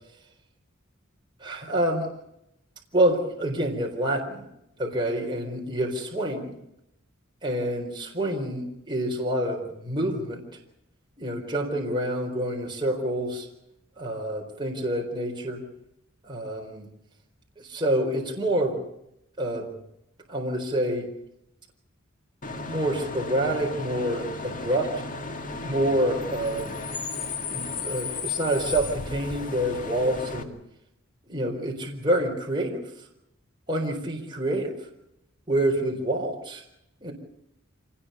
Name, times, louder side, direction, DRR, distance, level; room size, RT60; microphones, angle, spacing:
voice 1, 1.4-2.1 2.9-4.4 4.8-6.5 7.4-10.4 11.2-13.5 14.0-15.6 16.2-16.9 17.6-18.8 19.4-19.7 20.3-21.1 22.6-24.9 25.6-26.8 27.4-30.6 31.3-32.8 33.7-34.7 35.5-36.6 37.0-37.1, right 1 dB, 25° right, 0 dB, 4.4 m, -27 dB
Bus / Idling / Screech, 22.4-30.4, left 4 dB, 40° left, 2.0 m, -34 dB
26.5 x 20.0 x 7.0 m, 0.82 s
head